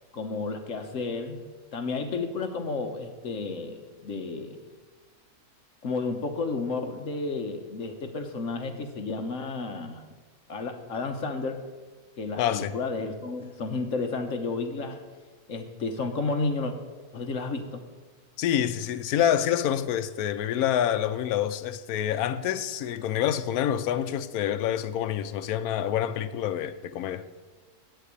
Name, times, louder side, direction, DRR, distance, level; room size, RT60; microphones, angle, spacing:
voice 1, 0.1-1.4 1.7-4.6 5.8-10.0 10.5-11.6 12.2-15.0 15.5-16.7 17.1-17.8, left 3 dB, 60° left, 1.3 m, -32 dB
voice 2, 12.4-12.7 18.4-27.2, left 10 dB, 75° left, 1.1 m, -27 dB
8.5 x 8.2 x 8.2 m
omnidirectional pair, 1.6 m